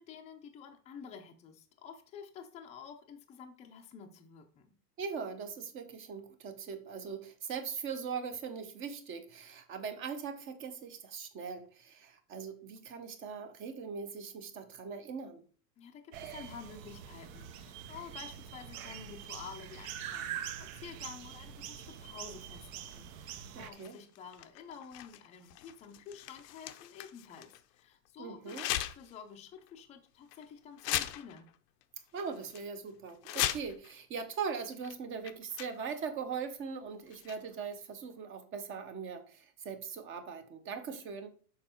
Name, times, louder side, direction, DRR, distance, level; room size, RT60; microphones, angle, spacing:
voice 1, 0.0-4.7 15.8-31.5, left 6 dB, 15° left, 0.5 m, -50 dB
voice 2, 5.0-15.4 23.5-24.0 28.2-28.7 32.1-41.3, right 6 dB, 25° right, 0.8 m, -40 dB
sound 1, 16.1-23.7, right 9 dB, 55° right, 0.9 m, -44 dB
sound 2, 23.7-27.6 28.5-29.2 29.6-29.7 30.3-30.4 30.8-31.6 31.8-31.9 32.2-32.6 33.1-33.9 34.8-34.9 35.2-36.0 37.1-37.6, left 13 dB, 80° left, 0.8 m, -38 dB
6.8 x 4.7 x 4.3 m
supercardioid pair, 150°, 47 cm